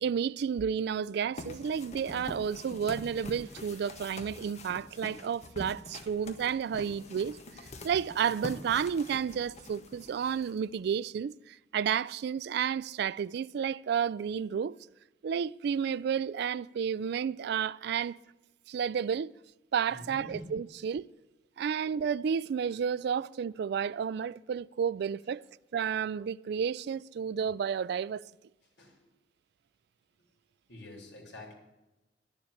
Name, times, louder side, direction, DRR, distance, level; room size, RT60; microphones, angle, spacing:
voice 1, 0.0-14.7 15.2-18.2 18.7-19.3 19.7-21.1 21.6-25.4 25.7-28.2, right 7 dB, 65° right, 0.3 m, -31 dB
sound 1, 1.4-10.9, left 2 dB, 40° left, 1.3 m, -45 dB
voice 2, 19.9-20.5 21.6-21.7 28.6-29.0 30.2-30.3 30.7-31.5, left 1 dB, 70° left, 3.5 m, -47 dB
11.0 x 7.2 x 8.1 m
head